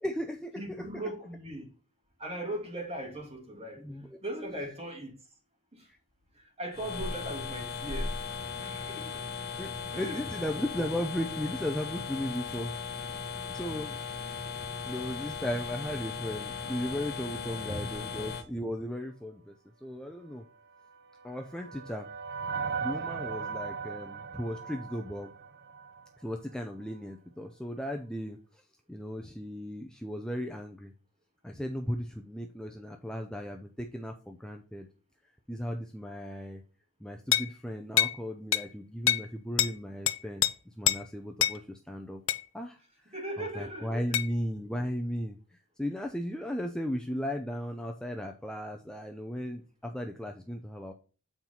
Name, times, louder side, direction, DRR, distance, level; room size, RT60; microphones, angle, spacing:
voice 1, 0.0-0.9 3.8-4.2 9.6-12.7 13.5-14.0 14.8-19.5 19.8-20.5 21.2-22.1 22.8-25.3 26.2-28.6 28.9-30.9 31.4-34.9 35.5-36.6 37.0-40.4 40.8-42.2 42.5-42.8 43.4-50.9, equal, 5° left, 0.5 m, -36 dB
voice 2, 0.6-1.7 2.2-3.8 4.2-5.2 5.7-5.9 6.6-8.2 8.6-9.3 9.5-9.6 9.9-10.2 43.1-43.9, right 1 dB, 30° right, 1.9 m, -38 dB
sound 1, 6.7-18.4, left 5 dB, 45° left, 1.0 m, -37 dB
sound 2, 20.8-26.2, right 5 dB, 50° right, 0.6 m, -38 dB
sound 3, 37.3-37.5 38.0-38.2 38.5-38.7 39.1-39.3 39.6-39.7 40.1-40.5 40.9-41.0 41.4-41.6 42.3-42.5 44.1-44.3, left 12 dB, 65° left, 0.5 m, -26 dB
7.4 x 4.4 x 3.9 m
head